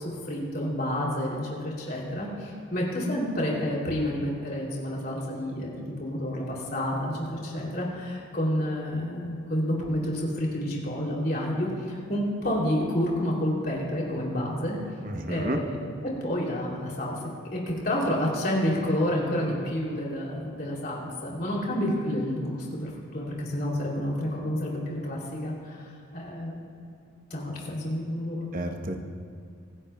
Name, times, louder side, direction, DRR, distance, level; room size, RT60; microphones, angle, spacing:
voice 1, 0.0-14.8 15.3-15.9 16.2-17.1 17.5-26.9 27.3-28.5, left 1 dB, 45° left, -3 dB, 2.9 m, -29 dB
voice 2, 15.0-15.6 28.5-29.0, right 1 dB, 40° right, 4 dB, 0.9 m, -30 dB
24.5 x 10.5 x 2.3 m, 2.5 s
head